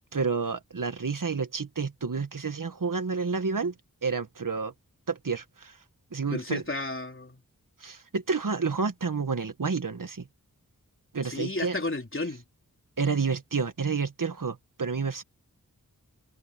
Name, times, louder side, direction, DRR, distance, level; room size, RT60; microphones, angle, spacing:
voice 1, 0.1-3.7 4.0-4.7 5.1-5.8 6.1-6.6 7.8-10.3 11.1-11.8 13.0-15.2, right 5 dB, 65° right, 1.6 m, -29 dB
voice 2, 6.3-7.4 11.2-12.4, left 2 dB, 35° left, 3.7 m, -32 dB
wide cardioid pair, 80°, 34 cm